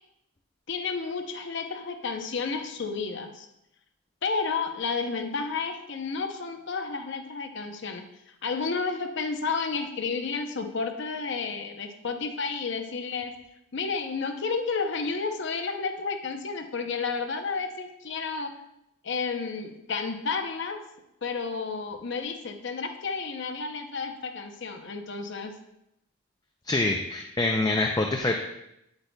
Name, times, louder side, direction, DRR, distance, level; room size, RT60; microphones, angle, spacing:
voice 1, 0.7-3.5 4.2-8.1 8.4-13.3 13.7-18.5 19.0-20.8 21.2-25.5, left 4 dB, 55° left, 6 dB, 0.6 m, -31 dB
voice 2, 26.7-28.4, left 2 dB, 15° left, 2 dB, 0.4 m, -25 dB
9.3 x 8.0 x 2.2 m, 0.82 s
head